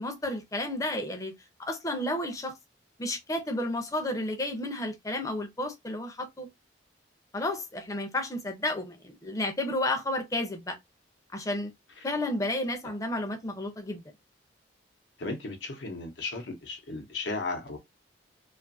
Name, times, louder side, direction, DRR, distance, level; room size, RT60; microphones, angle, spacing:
voice 1, 0.0-1.3 1.6-2.5 3.0-6.5 7.3-10.8 11.3-11.7 12.0-14.0, left 1 dB, 20° left, 0.5 m, -32 dB
voice 2, 15.2-17.8, left 3 dB, 80° left, 0.7 m, -35 dB
2.6 x 2.4 x 2.5 m
head